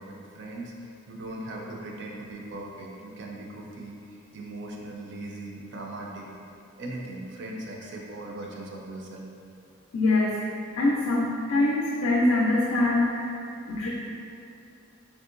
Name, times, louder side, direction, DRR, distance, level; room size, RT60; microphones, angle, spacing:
voice 1, 0.0-6.3 6.8-9.3, right 1 dB, 55° right, -1 dB, 0.4 m, -39 dB
voice 2, 9.9-13.3 13.7-13.9, left 2 dB, 85° left, -4 dB, 0.4 m, -24 dB
3.6 x 2.9 x 2.4 m, 2.6 s
head